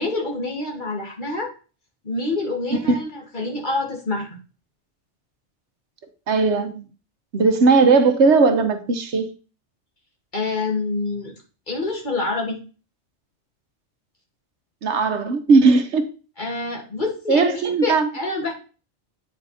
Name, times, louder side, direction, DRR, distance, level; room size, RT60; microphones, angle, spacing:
voice 1, 0.0-1.5 2.0-4.4 10.3-11.3 11.7-12.6 16.4-18.5, left 3 dB, 40° left, 0 dB, 2.0 m, -27 dB
voice 2, 6.3-6.9 7.3-9.3 14.8-16.0 17.3-18.1, right 4 dB, 70° right, 8 dB, 1.2 m, -17 dB
8.6 x 4.7 x 4.1 m, 0.35 s
omnidirectional pair, 1.2 m